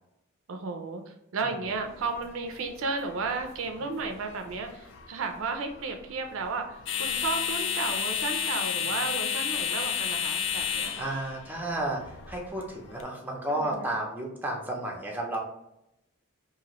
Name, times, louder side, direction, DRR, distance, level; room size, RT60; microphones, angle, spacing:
voice 1, 0.5-11.1 13.5-13.8, right 4 dB, 65° right, 5 dB, 0.4 m, -33 dB
voice 2, 1.4-1.8 11.0-15.4, right 1 dB, 10° right, -1 dB, 0.5 m, -32 dB
sound 1, 1.7-13.0, left 8 dB, 60° left, 0.3 m, -33 dB
2.9 x 2.5 x 2.9 m, 0.83 s
head